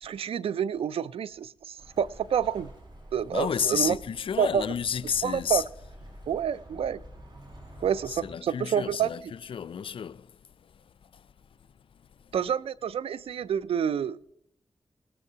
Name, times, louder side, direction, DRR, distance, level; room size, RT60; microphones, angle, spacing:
voice 1, 0.0-2.7 3.1-4.0 4.4-4.6 5.2-5.6 6.3-7.0 7.8-9.1 12.3-14.3, right 8 dB, 80° right, 0.4 m, -28 dB
Bird, 1.8-8.3, right 1 dB, 55° right, 5.5 m, -48 dB
voice 2, 3.3-5.6 8.1-10.3 11.1-11.2, left 7 dB, 65° left, 0.3 m, -31 dB
18.0 x 13.5 x 2.8 m
cardioid pair, 50°, 10 cm